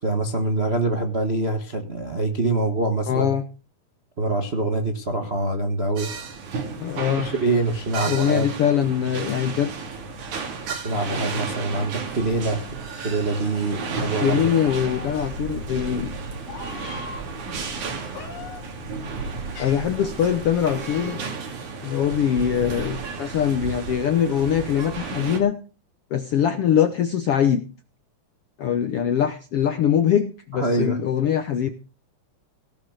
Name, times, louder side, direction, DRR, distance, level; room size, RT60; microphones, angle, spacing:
voice 1, 0.0-3.3 4.2-6.1 7.2-8.5 10.7-12.6 13.0-14.4 30.5-31.0, right 2 dB, 45° right, 4 dB, 0.8 m, -25 dB
voice 2, 3.1-3.4 6.8-7.3 8.1-9.7 14.0-16.1 19.6-21.2 21.8-25.6 26.1-27.6 28.6-31.7, left 9 dB, 70° left, 9 dB, 1.4 m, -22 dB
sound 1, 6.0-25.4, right 5 dB, 65° right, 3.8 m, -33 dB
Meow, 14.7-21.0, left 6 dB, 85° left, 3.4 m, -41 dB
17.5 x 7.1 x 6.5 m, 0.34 s
omnidirectional pair, 3.8 m